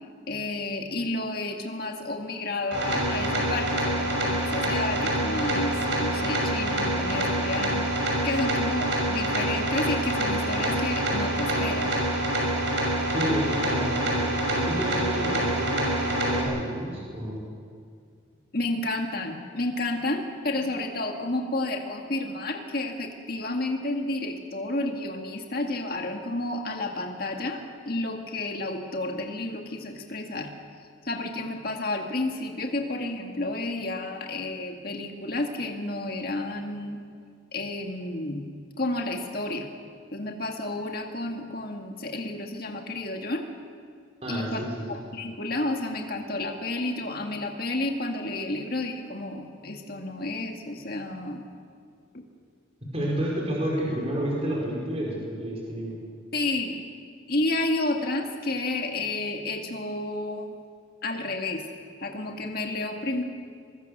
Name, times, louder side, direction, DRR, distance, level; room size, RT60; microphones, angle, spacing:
voice 1, 0.3-11.9 18.5-30.5 31.0-37.0 37.5-38.5 38.8-39.7 40.1-43.5 44.3-44.6 44.9-51.5 56.3-56.8 57.3-60.5 61.0-61.6 62.0-63.2, left 2 dB, 50° left, 2 dB, 1.9 m, -31 dB
sound 1, 2.7-16.4, right 1 dB, 65° right, 6.7 m, -26 dB
voice 2, 13.1-14.1 14.5-17.4 44.2-44.8 52.9-56.0, equal, 30° right, -4 dB, 4.9 m, -30 dB
23.5 x 22.0 x 6.7 m, 2.2 s
head